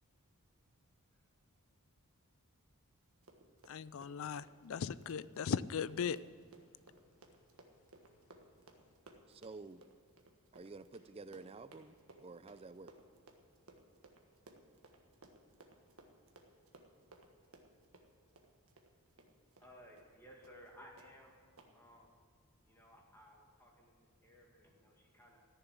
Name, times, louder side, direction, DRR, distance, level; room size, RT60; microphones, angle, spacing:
Run, 3.1-19.7 20.0-20.1 20.4-20.7 21.0-21.1 21.6-21.7, right 2 dB, 70° right, 1.5 m, -61 dB
voice 1, 3.7-6.2, left 7 dB, 60° left, 18 dB, 0.4 m, -38 dB
voice 2, 9.3-9.8 10.5-12.9, right 3 dB, 25° right, 14 dB, 0.4 m, -51 dB
voice 3, 19.6-21.4 21.7-22.2 22.6-25.5, equal, 10° left, -1 dB, 2.2 m, -59 dB
14.0 x 7.0 x 9.8 m, 2.1 s
head